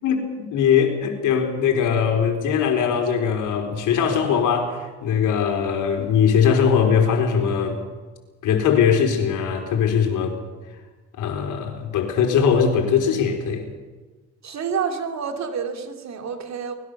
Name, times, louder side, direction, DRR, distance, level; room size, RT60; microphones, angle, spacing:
voice 1, 0.0-7.8 8.4-10.4 11.2-13.7, left 7 dB, 85° left, 3 dB, 4.4 m, -20 dB
voice 2, 14.4-16.7, right 6 dB, 65° right, 5 dB, 3.3 m, -28 dB
24.0 x 21.0 x 6.9 m, 1.3 s
cardioid pair, 90°, 30 cm